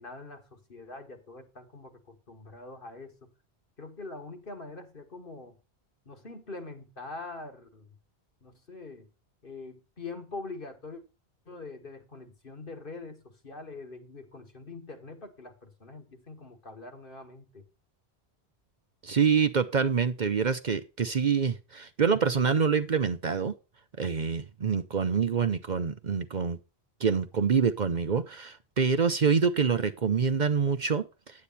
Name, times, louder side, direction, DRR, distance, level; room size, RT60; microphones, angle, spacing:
voice 1, 0.0-3.3 3.8-5.6 6.1-7.9 8.4-9.1 9.4-11.0 11.5-17.7, left 3 dB, 55° left, 5 dB, 2.1 m, -44 dB
voice 2, 19.0-23.5 24.0-26.6 27.0-31.0, right 6 dB, 50° right, 10 dB, 0.8 m, -26 dB
10.0 x 8.4 x 4.1 m, 0.30 s
omnidirectional pair, 1.1 m